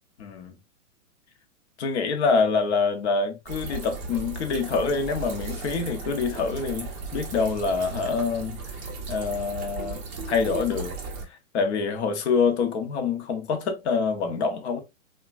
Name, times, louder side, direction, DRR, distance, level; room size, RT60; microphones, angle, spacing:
voice 1, 0.2-0.6 1.8-8.6 9.1-10.0 10.3-10.9 11.5-14.8, left 5 dB, 50° left, 0.8 m, -26 dB
sound 1, 3.5-11.2, right 4 dB, 20° right, 0.5 m, -36 dB
2.9 x 2.3 x 2.3 m
hypercardioid pair, 125°, 42 cm